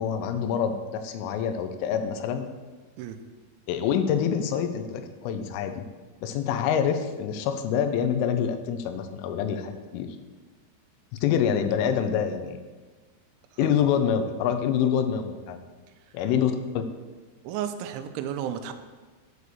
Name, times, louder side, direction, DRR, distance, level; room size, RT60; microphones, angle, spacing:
voice 1, 0.0-2.5 3.7-5.9 6.2-10.1 11.1-12.6 13.6-15.6 16.1-16.8, left 8 dB, 85° left, 8 dB, 3.2 m, -26 dB
voice 2, 17.4-18.7, right 9 dB, 80° right, 8 dB, 2.8 m, -32 dB
8.5 x 4.7 x 6.8 m, 1.3 s
omnidirectional pair, 5.7 m